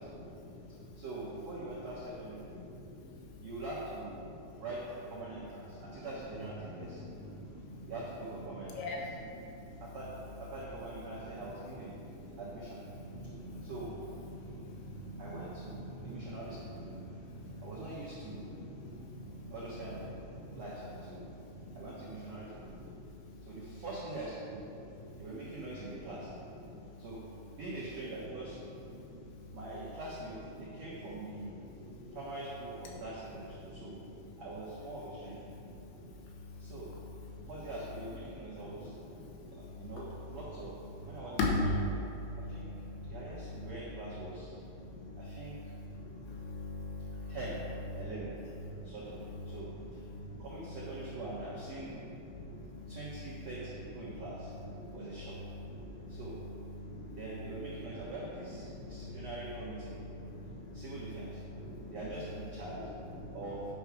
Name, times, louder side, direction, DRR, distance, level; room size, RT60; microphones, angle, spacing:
voice 1, 0.1-1.0 2.4-3.5 4.2-4.6 5.8-6.1 7.0-7.9 8.7-9.8 12.0-12.4 12.9-13.7 14.3-15.2 15.9-16.3 16.7-17.6 18.4-19.5 20.4-20.6 21.3-21.8 22.5-23.5 24.7-25.2 26.6-27.1 28.5-28.6 28.9-29.6 30.6-30.7 31.5-32.2 33.6-34.4 35.5-36.8 37.3-37.5 38.3-40.0 41.4-43.7 44.6-47.4 47.9-48.1 48.7-50.5 50.7-51.1 51.9-53.5 54.1-54.2 54.8-58.2 58.7-59.3 59.8-62.0 62.8-63.4, left 2 dB, 80° left, -2 dB, 3.5 m, -43 dB
voice 2, 0.9-2.6 3.4-4.2 4.6-7.0 7.8-9.1 9.8-12.0 12.4-12.8 13.6-14.0 15.2-16.8 17.6-18.5 19.5-20.1 20.5-21.2 21.7-22.8 23.4-24.6 25.2-26.3 27.0-27.2 27.5-28.6 29.5-31.5 32.1-34.0 34.4-35.5 36.6-36.9 37.4-39.0 39.5-40.7 41.0-42.0 42.4-42.7 43.0-44.5 45.2-45.5 47.3-47.6 48.0-48.3 48.8-49.2 49.4-50.0 50.4-52.0 52.9-54.5 54.9-55.4 56.1-56.4 57.1-60.0 60.7-61.4 61.9-62.9 63.3-63.7, right 2 dB, 75° right, -8 dB, 1.5 m, -43 dB
sound 1, 6.3-23.5, right 1 dB, 60° left, 2.5 m, -50 dB
9.8 x 4.7 x 5.9 m, 2.8 s
omnidirectional pair, 5.3 m